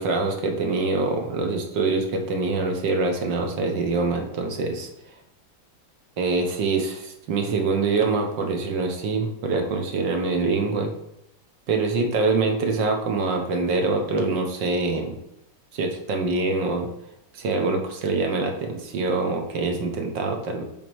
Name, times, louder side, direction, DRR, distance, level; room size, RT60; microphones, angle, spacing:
voice 1, 0.0-5.1 6.2-10.9 11.7-15.2 15.7-16.9 17.3-20.6, right 3 dB, 65° right, 3 dB, 1.7 m, -25 dB
7.8 x 3.7 x 4.6 m, 0.83 s
omnidirectional pair, 2.2 m